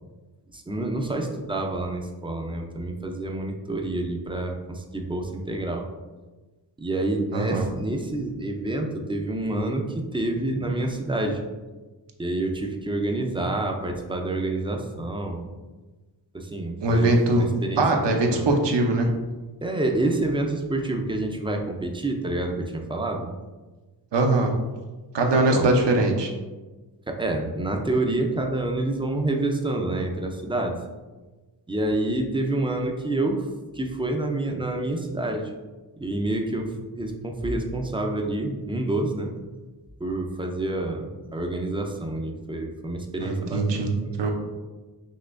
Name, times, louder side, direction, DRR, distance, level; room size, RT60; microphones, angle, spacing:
voice 1, 0.5-5.9 6.8-9.9 10.1-11.4 12.2-15.5 16.3-18.5 19.6-23.3 25.3-25.7 27.1-30.8 31.7-33.5 33.7-35.5 36.0-39.3 40.0-44.2, right 2 dB, 15° right, 2 dB, 0.4 m, -28 dB
voice 2, 7.3-7.7 16.8-17.5 17.8-19.1 24.1-24.5 25.1-26.3 43.2-43.9 44.2-44.3, right 2 dB, 70° right, 2 dB, 0.8 m, -21 dB
5.6 x 3.2 x 2.5 m, 1.2 s
wide cardioid pair, 155°, 43 cm